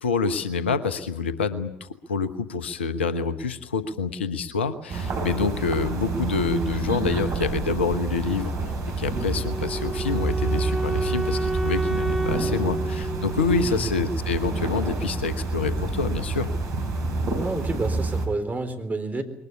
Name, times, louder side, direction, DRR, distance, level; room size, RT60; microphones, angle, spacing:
voice 1, 0.0-8.5 9.0-16.5, left 5 dB, 90° left, 12 dB, 1.1 m, -27 dB
sound 1, 4.9-18.3, right 3 dB, 60° right, 5.1 m, -28 dB
Wind instrument woodwind instrument, 9.1-14.2, right 2 dB, 5° right, 4.9 m, -30 dB
voice 2, 17.4-19.2, right 2 dB, 30° right, 6 dB, 4.0 m, -29 dB
21.5 x 19.5 x 9.7 m, 0.77 s
hypercardioid pair, 50°, 6 cm